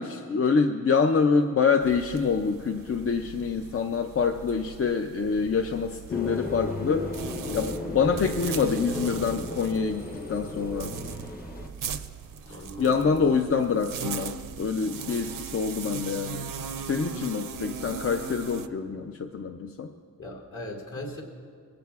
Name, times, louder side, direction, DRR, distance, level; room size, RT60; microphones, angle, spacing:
voice 1, 0.0-7.1 7.5-10.9 12.5-16.5 16.8-19.9, left 5 dB, 45° left, 5 dB, 0.5 m, -26 dB
sound 1, 1.8-18.7, right 6 dB, 70° right, 0.6 m, -39 dB
sound 2, 6.1-11.7, left 2 dB, 25° left, 0.9 m, -34 dB
voice 2, 12.5-13.3 20.2-21.2, left 1 dB, 60° left, -1 dB, 2.6 m, -39 dB
21.0 x 16.5 x 2.4 m, 2.1 s
wide cardioid pair, 155°, 34 cm